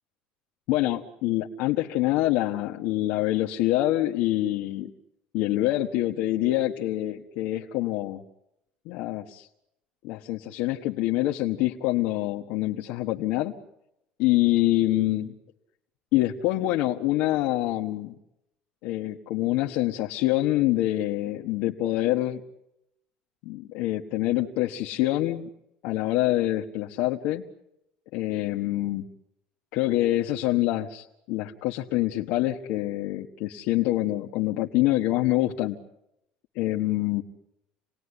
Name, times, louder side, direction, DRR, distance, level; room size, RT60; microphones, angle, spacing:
voice 1, 0.7-4.9 5.3-8.2 8.8-9.5 10.0-13.5 14.2-15.3 16.1-18.1 18.8-22.4 23.4-25.5 25.8-27.4 28.1-29.1 29.7-35.8 36.5-37.2, left 15 dB, 75° left, 0 dB, 1.5 m, -26 dB
28.5 x 19.5 x 9.9 m, 0.86 s
cardioid pair, 155°, 3 cm